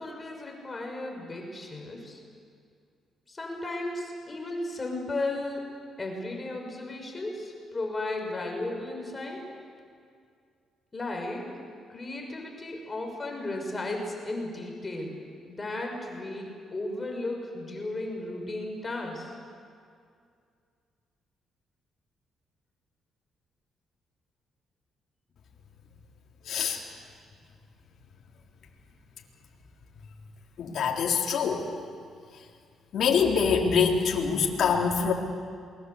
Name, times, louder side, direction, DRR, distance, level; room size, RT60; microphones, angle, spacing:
voice 1, 0.0-2.2 3.3-5.7 6.0-9.5 10.9-11.5 11.9-15.2 15.5-19.3, left 2 dB, 25° left, 1 dB, 6.2 m, -35 dB
voice 2, 26.5-26.8 30.6-31.7 32.9-35.1, left 6 dB, 65° left, -1 dB, 3.9 m, -24 dB
28.0 x 22.5 x 8.3 m, 2.2 s
cardioid pair, 90°, 0 cm